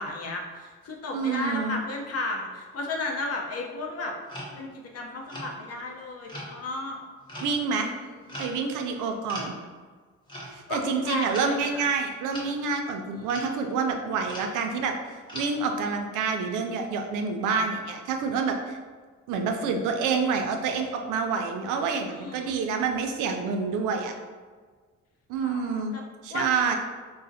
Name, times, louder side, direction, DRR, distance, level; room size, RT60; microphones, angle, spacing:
voice 1, 0.0-4.1 4.6-4.7 4.9-7.1 7.9-8.1 10.7-11.9 13.1-13.3 22.0-22.5 25.3-26.0 26.3-26.7, left 2 dB, 55° left, 1 dB, 0.7 m, -34 dB
voice 2, 1.1-1.8 7.4-7.9 8.4-9.5 10.5-14.9 15.3-18.8 19.3-24.1 25.3-25.9 26.2-26.7, right 5 dB, 90° right, 4 dB, 0.5 m, -27 dB
sound 1, 4.3-4.6 5.2-5.5 6.3-6.5 7.3-7.6 8.3-8.6 9.3-9.5 10.3-10.5 11.3-11.5 12.3-12.5 13.3-13.5 14.3-14.5 15.3-15.5, equal, 15° left, 1.0 m, -39 dB
3.8 x 2.0 x 2.7 m, 1.5 s
cardioid pair, 90°, 30 cm